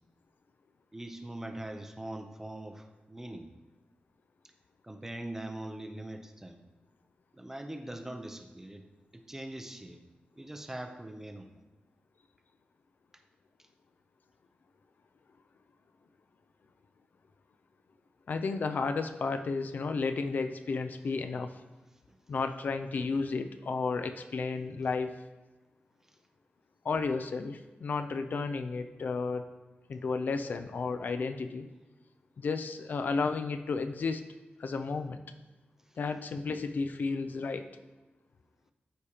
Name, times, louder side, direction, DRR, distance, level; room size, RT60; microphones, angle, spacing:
voice 1, 0.9-3.5 4.8-6.6 7.3-8.8 9.1-10.0 10.4-11.5, right 1 dB, 10° right, 5 dB, 0.6 m, -42 dB
voice 2, 18.3-21.5 22.3-25.2 26.8-29.5 29.9-31.7 32.4-34.3 34.6-35.2 36.0-37.7, left 4 dB, 55° left, 9 dB, 0.4 m, -32 dB
13.0 x 4.9 x 2.9 m, 1.1 s
wide cardioid pair, 170°, 4 cm